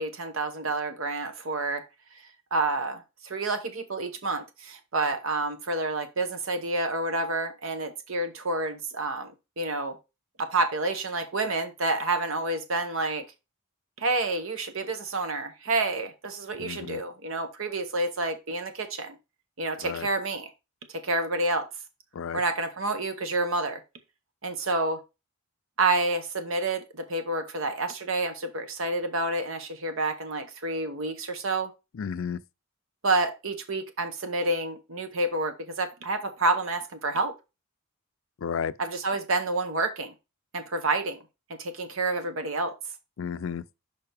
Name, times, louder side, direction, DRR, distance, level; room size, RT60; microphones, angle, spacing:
voice 1, 0.0-1.8 2.5-10.0 10.4-13.2 14.0-19.1 19.6-20.5 20.9-21.7 22.3-23.8 24.4-25.0 25.8-31.7 33.0-37.3 38.8-40.1 40.5-41.2 41.5-42.7, right 2 dB, 60° right, 0.9 m, -29 dB
voice 2, 16.6-17.0 19.8-20.1 22.1-22.4 31.9-32.4 38.4-38.7 43.2-43.6, left 7 dB, 60° left, 0.4 m, -32 dB
6.7 x 5.2 x 3.4 m
head